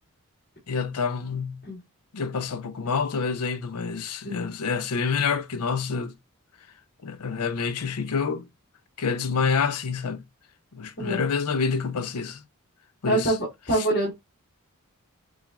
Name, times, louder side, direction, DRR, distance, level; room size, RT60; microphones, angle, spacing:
voice 1, 0.7-1.6 2.1-6.1 7.0-8.5 9.0-10.2 10.7-12.4 13.0-13.4 13.7-13.9, left 5 dB, 90° left, 0.6 m, -27 dB
voice 2, 13.1-13.4 13.7-14.1, right 1 dB, 45° left, 2.3 m, -24 dB
7.0 x 2.4 x 2.3 m
head